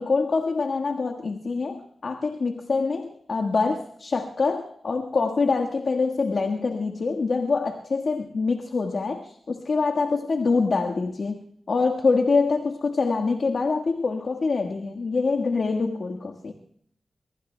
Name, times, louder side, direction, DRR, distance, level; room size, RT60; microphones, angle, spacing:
voice 1, 0.0-16.5, left 4 dB, 70° left, 2 dB, 1.5 m, -25 dB
25.0 x 23.5 x 2.2 m, 0.66 s
cardioid pair, 50°, 0 cm